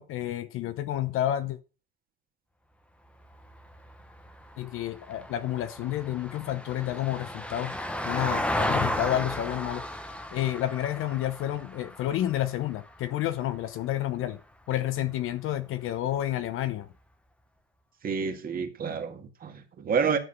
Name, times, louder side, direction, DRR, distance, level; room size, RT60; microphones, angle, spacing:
voice 1, 0.0-1.6 4.6-9.9 10.3-14.4 14.7-16.9, left 12 dB, 40° left, 0.8 m, -30 dB
Vehicle, 3.2-13.7 16.0-16.1, left 1 dB, 5° left, 1.0 m, -34 dB
voice 2, 18.0-20.2, right 6 dB, 25° right, 1.8 m, -29 dB
11.5 x 7.5 x 5.8 m
cardioid pair, 160°, 34 cm